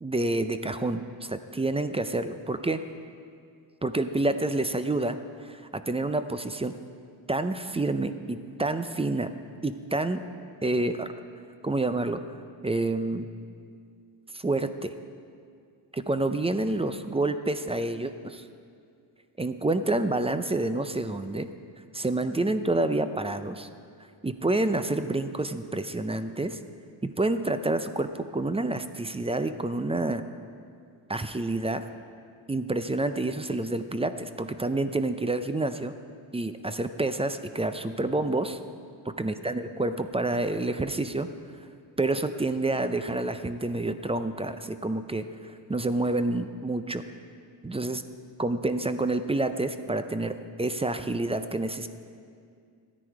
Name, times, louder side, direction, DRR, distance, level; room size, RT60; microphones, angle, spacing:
voice 1, 0.0-2.8 3.8-5.2 5.4-6.7 7.3-9.3 9.6-10.2 10.6-11.1 11.6-12.2 12.6-13.3 14.3-14.9 15.9-18.4 19.4-21.5 21.9-23.7 24.2-26.6 27.0-30.2 31.1-31.9 32.5-35.9 36.3-38.6 39.2-41.3 42.0-47.0 47.6-48.0 48.4-51.9, right 2 dB, 15° right, 10 dB, 0.5 m, -28 dB
13.5 x 9.8 x 4.7 m, 2.3 s
cardioid pair, 85°, 49 cm